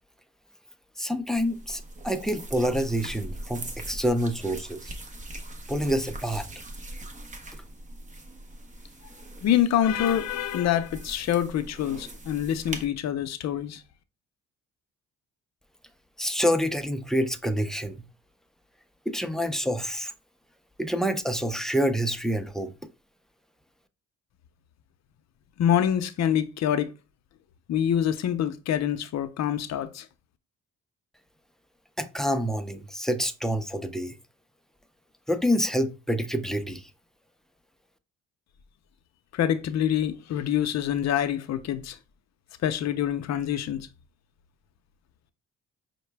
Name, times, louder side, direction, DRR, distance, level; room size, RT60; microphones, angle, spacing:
voice 1, 1.0-4.9 5.7-6.5 16.2-18.0 19.1-20.1 20.8-22.7 32.0-34.1 35.3-36.9, equal, ahead, 0.4 m, -27 dB
sound 1, 1.4-12.9, right 1 dB, 25° right, 0.8 m, -41 dB
voice 2, 9.4-13.8 25.6-26.9 27.7-30.1 39.3-42.0 42.6-43.9, left 10 dB, 60° left, 0.6 m, -26 dB
5.6 x 2.1 x 3.3 m
cardioid pair, 90°, 30 cm